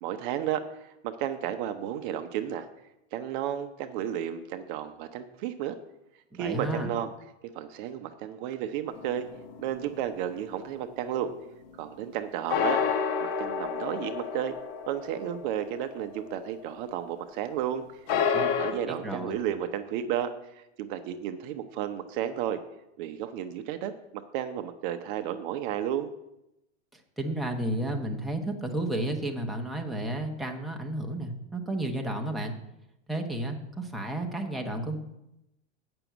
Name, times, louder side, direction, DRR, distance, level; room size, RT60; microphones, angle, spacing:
voice 1, 0.0-2.7 3.1-5.8 6.4-7.1 7.5-9.3 9.6-11.3 11.8-12.8 13.2-14.6 14.9-17.8 18.3-22.6 23.0-26.1, right 10 dB, 45° right, 9 dB, 0.7 m, -33 dB
voice 2, 6.3-6.9 18.3-19.4 26.9-32.5 33.1-35.0, right 1 dB, ahead, 1 dB, 0.9 m, -32 dB
sound 1, 8.9-10.4 12.5-16.6 16.9-17.0 18.1-18.7, left 7 dB, 40° left, 1.3 m, -30 dB
8.8 x 6.1 x 7.9 m, 0.87 s
supercardioid pair, 145°, 36 cm